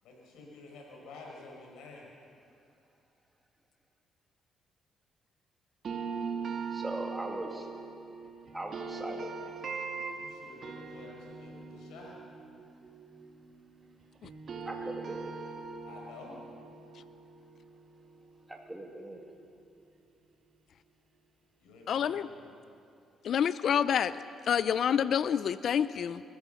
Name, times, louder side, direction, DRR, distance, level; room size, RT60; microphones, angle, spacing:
voice 1, 0.0-2.1 10.1-12.2 15.8-16.4 21.6-22.5, left 3 dB, 90° left, -1 dB, 5.7 m, -50 dB
sound 1, 5.8-13.9 14.2-19.2, right 5 dB, 55° right, 2.0 m, -41 dB
voice 2, 6.7-7.7 8.5-9.3 14.7-15.3 18.5-19.3, right 1 dB, 10° right, 1 dB, 2.1 m, -40 dB
voice 3, 21.9-22.3 23.2-24.1 24.4-26.2, left 8 dB, 65° left, 15 dB, 0.5 m, -27 dB
26.5 x 14.5 x 7.1 m, 2.5 s
cardioid pair, 90°, 0 cm